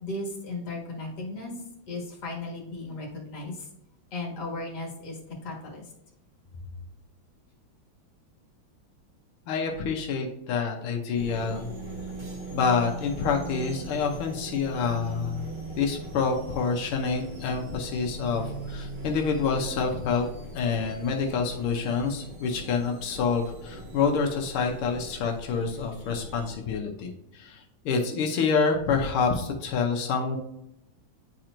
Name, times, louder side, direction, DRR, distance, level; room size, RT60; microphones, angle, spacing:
voice 1, 0.0-1.5 1.9-3.7 4.1-5.9, left 2 dB, 50° left, -1 dB, 2.1 m, -36 dB
voice 2, 9.5-11.7 12.5-15.5 15.8-20.3 20.5-30.4, left 5 dB, 90° left, 2 dB, 1.7 m, -27 dB
sound 1, 11.1-26.5, right 2 dB, 45° right, 1.9 m, -40 dB
9.7 x 4.3 x 2.5 m, 0.82 s
omnidirectional pair, 2.3 m